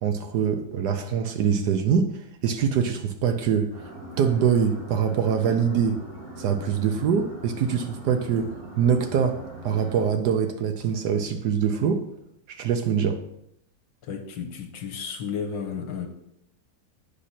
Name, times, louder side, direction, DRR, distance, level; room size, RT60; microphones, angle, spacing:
voice 1, 0.0-3.7 4.2-6.0 6.4-12.1 12.5-13.2, right 7 dB, 70° right, 6 dB, 1.1 m, -24 dB
sound 1, 3.7-10.0, right 1 dB, 85° right, 2.6 m, -41 dB
voice 2, 14.0-16.1, left 6 dB, 75° left, 4 dB, 1.7 m, -33 dB
8.3 x 6.0 x 4.2 m, 0.79 s
omnidirectional pair, 2.1 m